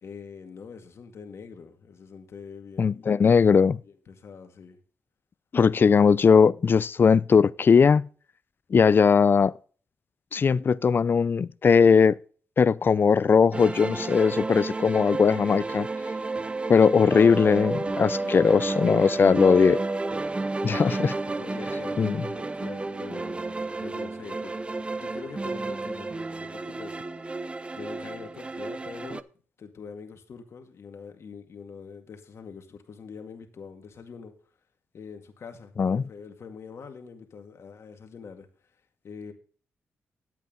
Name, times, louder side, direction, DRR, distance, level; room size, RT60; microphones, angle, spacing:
voice 1, 0.0-4.8 16.8-17.3 19.2-19.6 21.3-27.4 27.7-29.2 29.6-34.4 34.9-38.5 39.0-39.3, left 5 dB, 60° left, 2.1 m, -44 dB
voice 2, 2.8-3.8 5.5-8.1 8.7-9.5 10.3-12.2 12.6-15.9 16.7-19.8 20.6-21.1 22.0-22.2 35.8-36.0, left 6 dB, 45° left, 0.5 m, -19 dB
sound 1, 13.5-29.2, right 3 dB, 20° right, 0.6 m, -31 dB
11.0 x 8.4 x 3.9 m
cardioid pair, 85°, 5 cm